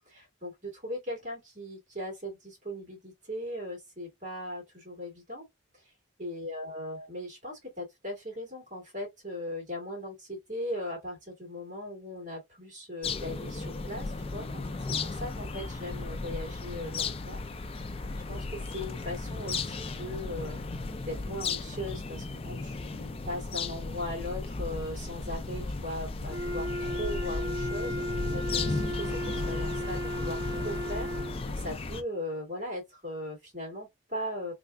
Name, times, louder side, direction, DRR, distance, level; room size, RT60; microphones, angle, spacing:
voice 1, 0.1-5.5 5.7-5.9 6.2-17.4 18.3-20.6 21.0-28.0 28.3-34.5, left 1 dB, 35° right, 2.1 m, -39 dB
sound 1, 13.0-32.0, left 3 dB, 25° left, 0.3 m, -35 dB
Wind instrument woodwind instrument, 26.3-31.4, equal, 60° right, 1.7 m, -35 dB
3.5 x 3.3 x 2.3 m
head